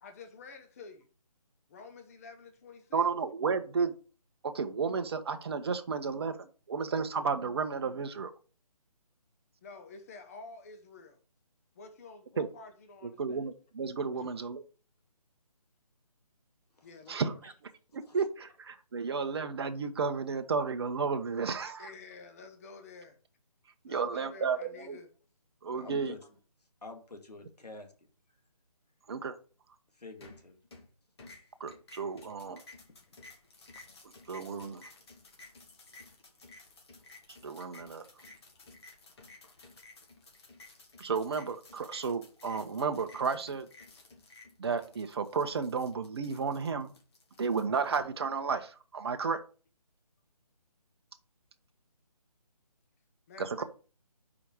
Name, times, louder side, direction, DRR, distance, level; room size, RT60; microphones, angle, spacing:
voice 1, 0.0-1.1 1.7-3.1 9.6-11.2 11.8-13.4 14.1-14.3 16.8-17.5 21.8-23.2 23.9-25.1 53.3-53.6, left 4 dB, 25° left, 0.8 m, -50 dB
voice 2, 2.9-3.9 4.5-8.3 12.4-12.5 13.0-14.6 17.1-17.5 17.9-21.9 23.8-25.0 25.6-26.1 29.1-29.3 31.6-32.6 34.3-34.9 37.4-38.0 41.0-43.7 44.6-46.9 47.4-49.4 53.4-53.6, right 5 dB, 40° right, 0.9 m, -32 dB
voice 3, 25.7-26.3 26.8-27.9 29.9-30.6 32.9-33.0, left 3 dB, 85° left, 2.0 m, -48 dB
sound 1, 30.2-30.9 31.2-48.0, left 3 dB, 40° left, 2.2 m, -55 dB
5.0 x 4.9 x 6.1 m
figure-of-eight pair, 160°, 20 cm